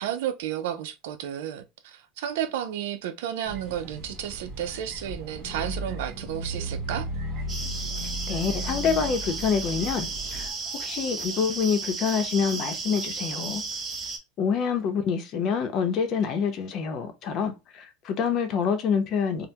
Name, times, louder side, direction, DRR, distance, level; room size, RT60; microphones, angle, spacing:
voice 1, 0.0-7.1, right 10 dB, 80° right, 0.5 m, -32 dB
sound 1, 3.4-10.5, right 1 dB, 45° right, 1.2 m, -35 dB
sound 2, 7.5-14.2, right 4 dB, 25° right, 0.8 m, -34 dB
voice 2, 8.3-10.5 10.8-13.6 14.4-19.5, left 6 dB, 45° left, 0.7 m, -26 dB
3.3 x 2.1 x 2.8 m
supercardioid pair, 135°, 0 cm